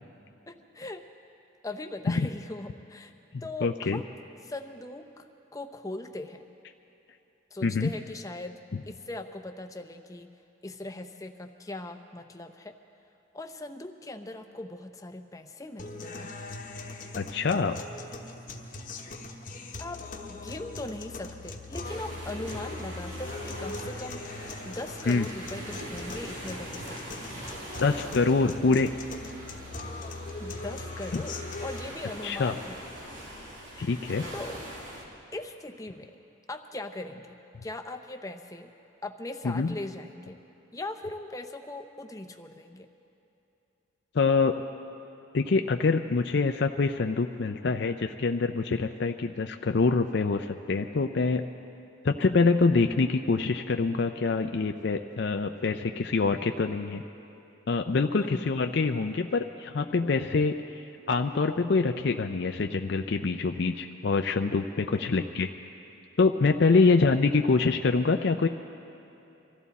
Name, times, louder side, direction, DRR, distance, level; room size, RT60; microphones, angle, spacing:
voice 1, 0.5-1.1 1.6-3.1 3.4-4.1 4.4-6.5 7.5-10.3 10.6-12.7 13.3-16.3 19.8-20.0 20.3-24.3 24.6-27.6 30.4-32.8 33.7-34.0 34.3-34.6 35.3-36.2 36.5-38.7 39.0-40.4 40.7-42.9 58.2-58.5 64.9-65.1 66.7-67.0, left 2 dB, 15° left, 6 dB, 0.6 m, -40 dB
voice 2, 3.3-4.0 7.6-7.9 17.1-17.8 25.1-25.2 27.8-28.9 31.1-31.2 32.2-32.5 33.8-34.3 39.4-39.7 44.1-44.5 45.3-51.4 52.0-57.0 57.7-65.5 66.2-68.5, left 4 dB, 55° left, 5 dB, 0.4 m, -25 dB
sound 1, 15.8-31.8, left 2 dB, 40° left, 1.0 m, -40 dB
sound 2, 21.8-35.0, equal, 70° right, 2.8 m, -42 dB
24.5 x 14.5 x 4.1 m, 2.9 s
head